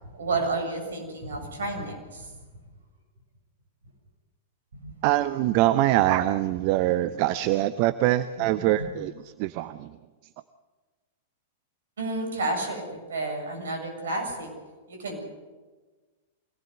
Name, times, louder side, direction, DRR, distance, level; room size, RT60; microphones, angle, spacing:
voice 1, 0.1-2.3 4.7-5.0 8.4-8.5 8.8-8.9 12.0-12.8 13.1-14.5 14.9-15.2, right 2 dB, 70° right, 4 dB, 7.6 m, -31 dB
voice 2, 5.0-9.1 9.4-9.9, right 15 dB, 45° right, 13 dB, 0.8 m, -23 dB
25.0 x 18.5 x 8.0 m, 1.3 s
figure-of-eight pair, 95°, 0 cm